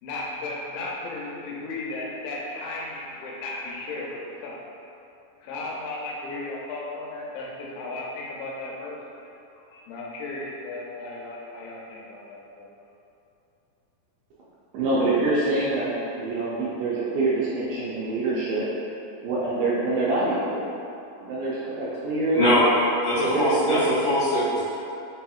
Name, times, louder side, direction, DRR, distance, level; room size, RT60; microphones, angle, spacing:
voice 1, 0.0-4.6 5.4-9.0 9.5-12.7, left 2 dB, 85° left, -4 dB, 2.3 m, -35 dB
voice 2, 14.7-18.7 19.2-20.7 21.2-22.4 23.3-23.8, right 2 dB, 80° right, -7 dB, 1.9 m, -25 dB
voice 3, 23.0-24.6, equal, 60° left, -13 dB, 2.2 m, -22 dB
5.2 x 2.8 x 2.3 m, 2.7 s
omnidirectional pair, 4.0 m